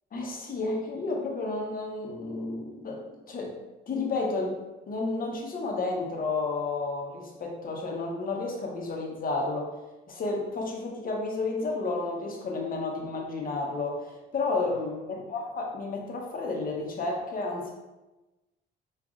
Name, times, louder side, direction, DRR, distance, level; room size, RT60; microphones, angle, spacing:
voice 1, 0.1-3.6 3.9-4.6 4.9-9.7 10.1-17.7, left 3 dB, 45° left, -1 dB, 0.9 m, -31 dB
5.0 x 2.5 x 2.4 m, 1.1 s
cardioid pair, 90°, 20 cm